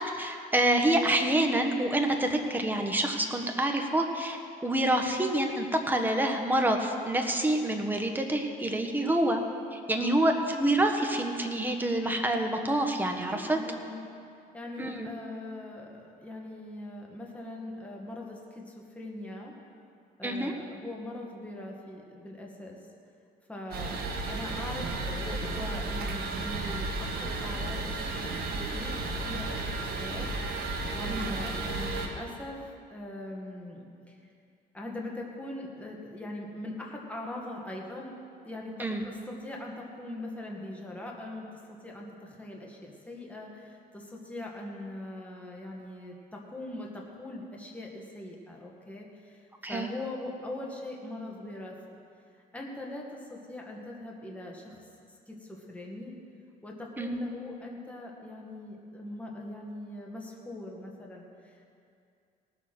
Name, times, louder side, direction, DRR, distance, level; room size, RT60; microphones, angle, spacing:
voice 1, 0.2-9.4 9.7-13.6 14.8-15.1 20.2-20.5 31.1-31.4 38.8-39.0 49.6-49.9 57.0-57.1, right 1 dB, 10° right, 4 dB, 1.4 m, -27 dB
voice 2, 9.9-10.3 13.3-14.0 14.5-19.6 20.2-22.8 23.5-30.3 30.9-32.6 32.9-34.3 34.7-38.1 38.4-51.7 52.5-54.8 55.3-56.2 56.6-61.7, left 1 dB, 10° left, -2 dB, 2.0 m, -41 dB
sound 1, 23.7-32.1, right 2 dB, 65° right, 1.8 m, -33 dB
18.5 x 7.3 x 6.2 m, 2.4 s
cardioid pair, 110°, 17 cm